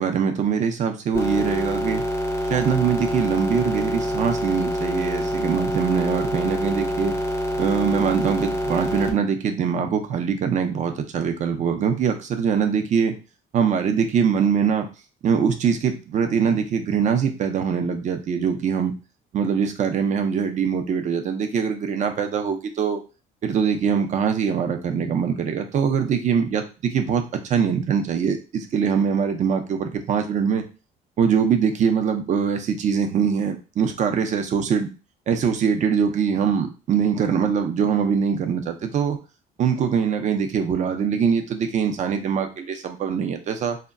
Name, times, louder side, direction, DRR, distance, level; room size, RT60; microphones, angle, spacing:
voice 1, 0.0-2.0 2.5-7.1 7.6-13.2 13.5-14.9 15.2-18.9 19.3-23.0 23.4-30.6 31.2-34.9 35.3-39.2 39.6-43.8, right 7 dB, 45° right, 6 dB, 0.5 m, -23 dB
sound 1, 1.1-9.1, equal, 15° left, 0.5 m, -26 dB
2.2 x 2.1 x 3.6 m, 0.32 s
cardioid pair, 110°, 17 cm